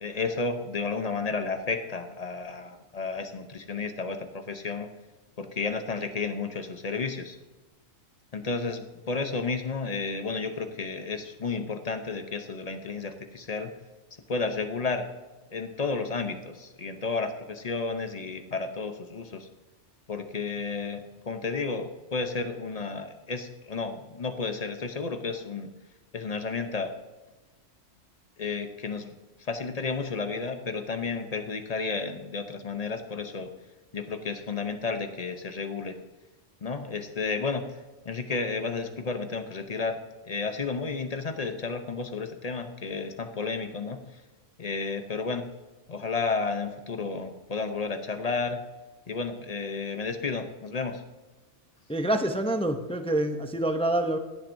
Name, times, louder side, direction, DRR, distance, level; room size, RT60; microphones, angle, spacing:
voice 1, 0.0-4.9 5.4-7.4 8.3-13.7 14.3-15.1 15.5-19.5 20.1-25.7 26.1-26.9 28.4-33.5 33.9-36.0 36.6-37.8 38.0-40.0 40.3-44.0 44.6-45.5 45.9-48.6 49.1-51.0, left 4 dB, 40° left, 7 dB, 0.7 m, -32 dB
voice 2, 51.9-54.2, right 1 dB, 10° left, 6 dB, 0.3 m, -26 dB
16.5 x 7.4 x 2.6 m, 1.2 s
omnidirectional pair, 1.3 m